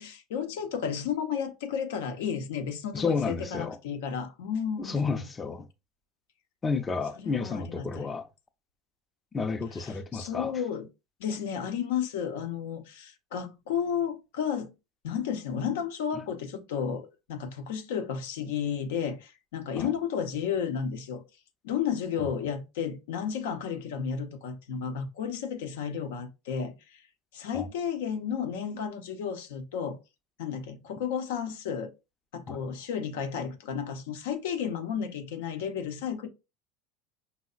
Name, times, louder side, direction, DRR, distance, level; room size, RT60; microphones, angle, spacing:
voice 1, 0.0-5.2 7.2-8.1 9.8-10.9 11.2-14.7 15.0-21.2 21.6-27.0 27.3-30.0 30.4-31.9 32.3-36.3, left 7 dB, 80° left, 0.6 m, -32 dB
voice 2, 2.9-3.8 4.8-5.7 6.6-8.3 9.3-10.5 19.8-19.9 22.2-22.4 27.5-27.7 32.5-32.6, left 4 dB, 25° left, 0.5 m, -31 dB
5.4 x 2.1 x 2.3 m
hypercardioid pair, 90°, 0 cm